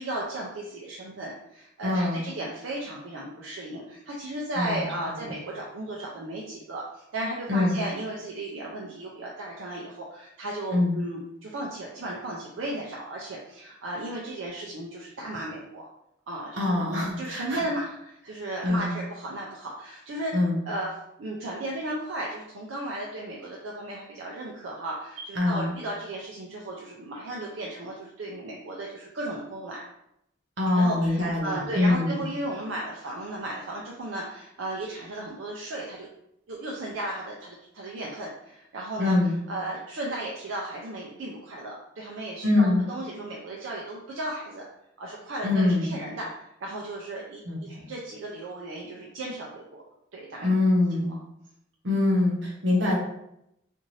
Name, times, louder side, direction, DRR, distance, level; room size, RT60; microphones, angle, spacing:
voice 1, 0.0-15.9 16.3-20.4 20.7-29.8 30.7-36.1 36.5-39.2 39.5-44.7 45.0-49.8 50.1-50.5, right 1 dB, 85° right, -3 dB, 0.5 m, -35 dB
voice 2, 1.8-2.2 4.6-4.8 7.5-7.7 10.7-11.0 16.6-17.6 18.6-18.9 20.3-20.6 25.3-25.7 30.6-32.2 39.0-39.3 42.4-42.8 45.4-45.9 47.5-47.8 50.4-51.1 51.8-53.0, left 2 dB, 70° right, -3 dB, 1.0 m, -24 dB
2.6 x 2.5 x 3.1 m, 0.80 s
head